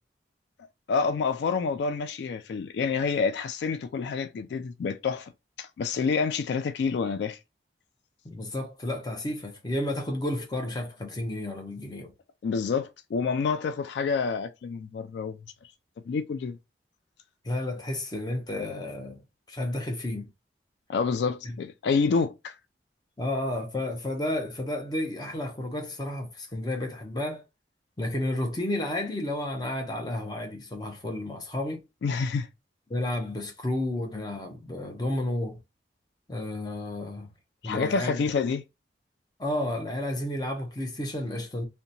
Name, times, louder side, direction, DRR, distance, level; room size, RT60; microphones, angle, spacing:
voice 1, 0.9-5.3 5.6-7.4 12.4-15.4 16.1-16.6 20.9-22.5 32.0-32.5 37.6-38.6, left 5 dB, 70° left, 0.3 m, -28 dB
voice 2, 8.2-12.1 17.4-19.2 19.5-20.3 21.4-21.5 23.2-27.4 28.0-31.8 32.9-35.6 36.3-37.3 37.6-38.2 39.4-41.6, left 1 dB, 20° left, 0.6 m, -31 dB
2.8 x 2.2 x 2.5 m
head